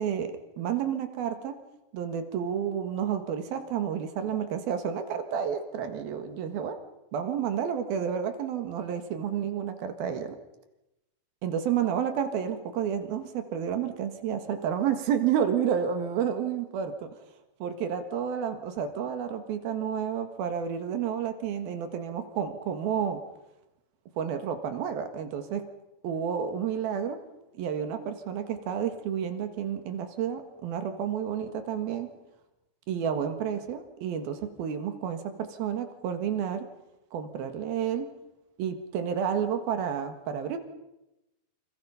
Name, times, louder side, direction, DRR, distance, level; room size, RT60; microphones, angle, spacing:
voice 1, 0.0-1.6 1.9-6.8 7.1-10.4 11.4-17.1 17.6-23.2 24.2-25.6 26.0-27.2 27.5-32.1 32.9-36.7 37.1-38.1 38.6-40.6, right 8 dB, 85° right, 8 dB, 3.5 m, -30 dB
29.0 x 26.0 x 5.7 m, 0.95 s
omnidirectional pair, 4.1 m